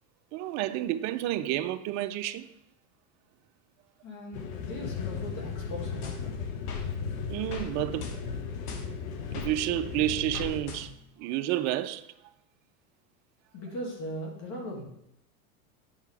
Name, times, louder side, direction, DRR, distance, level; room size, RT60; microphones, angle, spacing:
voice 1, 0.3-2.5 7.3-8.1 9.3-10.9 11.2-12.1, right 14 dB, 40° right, 0.5 m, -30 dB
voice 2, 4.0-6.4 13.5-14.8, equal, 45° left, 2.4 m, -39 dB
sound 1, 4.3-10.6, left 6 dB, 65° left, 1.2 m, -36 dB
sound 2, 6.0-6.9 7.5-7.7 8.0-9.5 10.3-11.2, left 5 dB, 85° left, 1.3 m, -41 dB
9.0 x 5.7 x 3.4 m
supercardioid pair, 115°, 44 cm